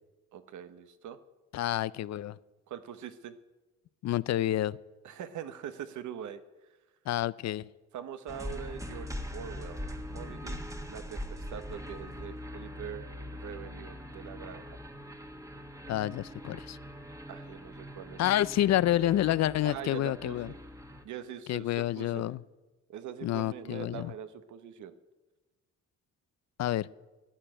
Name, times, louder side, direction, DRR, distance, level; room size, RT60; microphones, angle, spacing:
voice 1, 0.3-1.2 2.7-3.3 5.0-6.4 7.9-9.8 10.1-10.6 10.9-14.8 17.3-18.2 19.6-20.6 21.0-22.2 22.9-24.9, right 9 dB, 75° right, 11 dB, 1.1 m, -43 dB
voice 2, 1.5-2.4 4.0-4.8 7.1-7.7 15.9-16.8 18.2-20.5 21.5-22.4 23.2-24.1 26.6-26.9, left 13 dB, 60° left, 19 dB, 0.5 m, -28 dB
sound 1, 8.3-21.0, left 1 dB, 10° right, 1.4 m, -42 dB
13.0 x 8.6 x 9.0 m, 1.1 s
cardioid pair, 90°, 30 cm